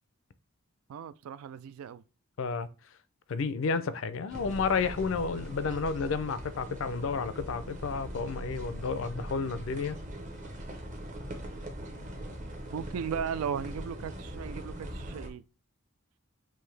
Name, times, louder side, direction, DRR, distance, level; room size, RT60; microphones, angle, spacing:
voice 1, 0.9-2.0 12.7-15.4, right 7 dB, 85° right, 0.3 m, -36 dB
voice 2, 2.4-2.7 3.3-10.0, left 5 dB, 65° left, 0.4 m, -31 dB
sound 1, 4.3-15.3, equal, 35° right, 0.8 m, -41 dB
5.5 x 2.6 x 3.2 m
head